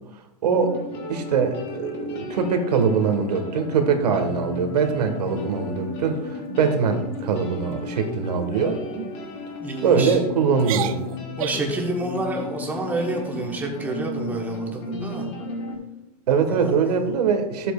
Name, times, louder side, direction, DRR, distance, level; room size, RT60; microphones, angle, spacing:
voice 1, 0.4-0.8 1.1-8.8 9.8-11.0 16.3-17.7, right 6 dB, 90° right, 5 dB, 1.5 m, -22 dB
sound 1, 0.6-15.7, left 3 dB, 30° left, 1.5 m, -34 dB
sound 2, 4.8-5.4 5.9-6.1 6.5-6.8 7.1-7.5 8.1-8.5 8.9-9.1 9.8-10.2 10.6-11.8, right 10 dB, 60° right, 0.5 m, -34 dB
voice 2, 9.6-10.2 11.4-15.3 16.5-17.1, right 2 dB, 10° right, 0 dB, 1.1 m, -29 dB
12.0 x 7.6 x 2.4 m, 0.97 s
supercardioid pair, 160°, 20 cm